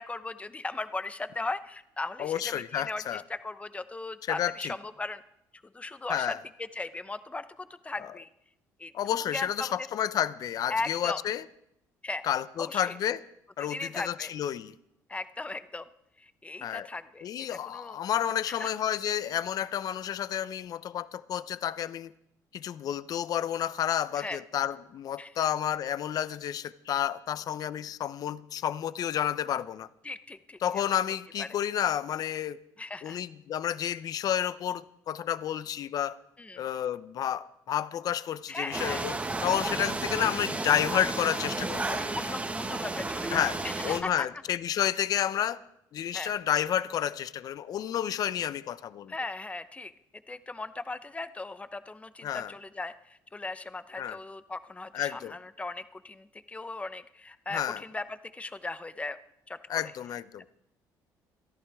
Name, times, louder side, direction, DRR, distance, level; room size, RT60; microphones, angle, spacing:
voice 1, 0.0-5.2 5.6-8.3 8.8-8.9 9.3-9.9 10.7-11.2 12.0-12.3 12.6-13.0 13.7-14.3 15.1-15.9 16.2-18.0 18.5-18.7 24.2-24.4 25.2-25.5 30.0-30.9 31.4-31.5 32.8-33.2 36.4-36.6 38.5-39.1 39.8-39.9 42.1-44.3 46.1-46.3 49.1-59.2 59.5-59.9, left 3 dB, 15° left, 0.9 m, -38 dB
voice 2, 2.2-3.2 4.3-4.7 6.1-6.4 8.9-11.4 12.2-13.2 13.6-14.7 16.6-16.9 17.2-22.1 22.5-29.9 30.6-32.6 33.0-36.2 36.6-39.1 39.4-42.0 43.3-43.6 43.8-45.6 45.9-49.1 52.2-52.5 54.0-54.2 54.9-55.3 57.5-57.8 59.7-60.5, left 10 dB, 55° left, 0.6 m, -30 dB
sound 1, 38.7-44.0, right 2 dB, 20° right, 1.6 m, -32 dB
28.0 x 11.0 x 3.6 m
cardioid pair, 90°, 8 cm